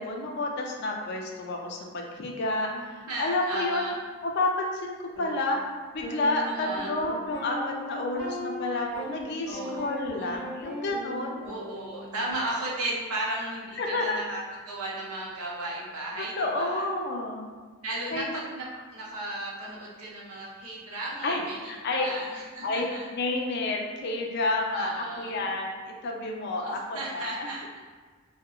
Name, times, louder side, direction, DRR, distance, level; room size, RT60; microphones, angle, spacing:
voice 1, 0.0-2.7 3.2-3.8 4.2-5.6 5.9-11.4 13.8-14.4 16.2-17.5 18.1-18.3 21.2-22.0 22.6-22.9 23.1-27.5, left 2 dB, 50° left, 0 dB, 0.3 m, -30 dB
voice 2, 2.7-3.9 6.4-6.9 9.5-9.8 10.1-10.3 11.4-16.8 17.8-18.7 18.9-23.1 24.7-25.4 26.6-27.8, right 2 dB, 85° right, -4 dB, 0.7 m, -35 dB
sound 1, 5.2-5.3 6.0-12.3, equal, 60° right, 1.4 m, -38 dB
2.8 x 2.0 x 2.3 m, 1.5 s
head